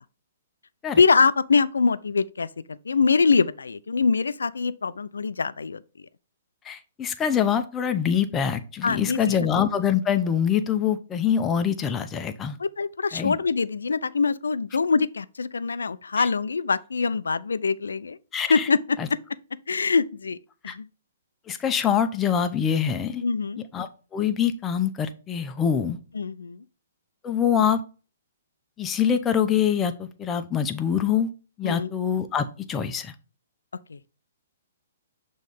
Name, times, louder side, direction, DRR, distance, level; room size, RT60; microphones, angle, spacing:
voice 1, 1.0-5.8 8.8-9.5 12.6-18.2 18.5-19.0 19.7-20.4 20.6-20.9 23.2-23.6 26.1-26.6 31.6-31.9 33.9-34.0, left 4 dB, 85° left, 0.4 m, -24 dB
voice 2, 6.7-12.6 13.1-13.4 16.2-16.3 18.3-18.7 19.0-19.1 20.7-20.8 21.5-23.2 23.7-26.0 27.2-27.8 28.8-31.3 31.6-33.1, left 8 dB, 20° left, 0.7 m, -24 dB
6.4 x 3.2 x 5.3 m
hypercardioid pair, 135°, 0 cm